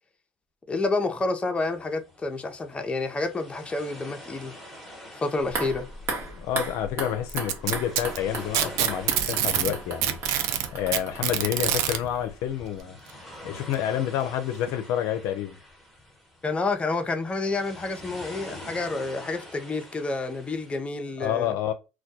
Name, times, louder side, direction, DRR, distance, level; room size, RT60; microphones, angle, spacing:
voice 1, 0.7-4.5 5.1-5.9 16.4-21.5, left 3 dB, 20° left, 0.5 m, -29 dB
sound 1, 1.6-20.8, left 1 dB, ahead, 1.1 m, -46 dB
sound 2, 5.4-12.5 12.8-12.9, right 2 dB, 45° right, 1.0 m, -36 dB
voice 2, 6.3-10.2 10.7-13.0 13.4-15.6 21.2-21.7, left 10 dB, 70° left, 0.4 m, -29 dB
Packing tape duct tape, 7.3-9.7 10.0-12.0 13.1-13.2 13.7-13.8 14.7-14.8, right 11 dB, 75° right, 0.4 m, -25 dB
2.2 x 2.1 x 2.7 m
supercardioid pair, 85°, 6 cm